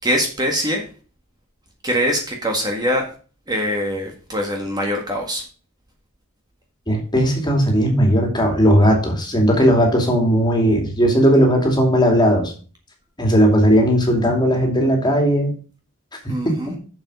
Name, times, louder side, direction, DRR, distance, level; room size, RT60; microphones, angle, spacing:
voice 1, 0.0-0.9 1.8-3.1 3.5-5.5 16.3-16.8, equal, 20° right, 1 dB, 1.7 m, -23 dB
voice 2, 6.9-12.5 13.2-15.5 16.2-16.3, equal, 20° left, 2 dB, 2.7 m, -17 dB
7.5 x 7.2 x 5.0 m, 0.38 s
head